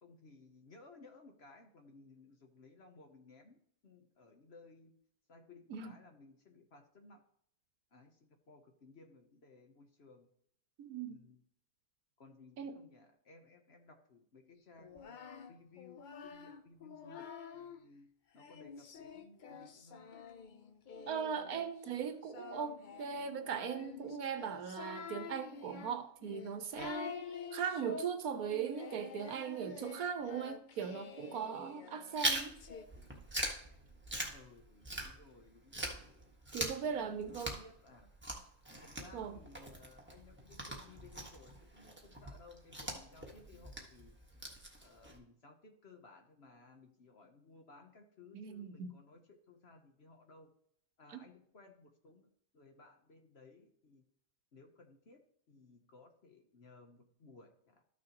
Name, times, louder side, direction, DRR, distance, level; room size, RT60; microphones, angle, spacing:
voice 1, 0.0-4.9 5.3-7.2 7.9-10.3 11.1-11.4 12.2-17.3 17.5-20.1 34.3-36.1 36.8-38.1 38.8-44.2 44.8-50.5 51.0-54.0 54.5-55.2 55.5-57.8, left 3 dB, 50° left, 1.0 m, -59 dB
voice 2, 10.8-11.2 12.6-12.8 21.1-27.2 27.5-32.5 36.5-37.6 39.1-39.4 48.3-48.9 51.1-51.3, right 7 dB, 70° right, 1.2 m, -39 dB
Singing, 14.8-17.8 18.4-32.9, left 6 dB, 85° left, 0.4 m, -48 dB
Chewing mastication, 32.2-35.4 35.7-45.2, right 1 dB, 10° right, 1.3 m, -41 dB
13.0 x 6.3 x 3.0 m
omnidirectional pair, 1.7 m